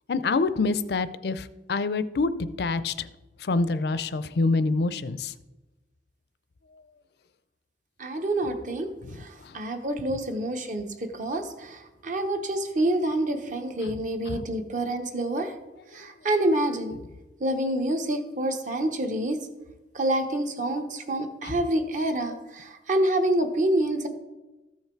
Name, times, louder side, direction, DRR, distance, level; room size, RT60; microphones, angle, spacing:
voice 1, 0.1-2.3 2.6-3.1 3.4-5.3 9.4-9.5 13.8-14.0 14.3-14.4 21.4-21.5, left 3 dB, 60° left, 14 dB, 0.5 m, -26 dB
voice 2, 8.0-8.9 9.2-15.5 15.9-17.0 17.4-19.4 19.9-24.1, right 1 dB, 45° right, 6 dB, 0.9 m, -27 dB
14.0 x 5.7 x 4.5 m, 1.1 s
head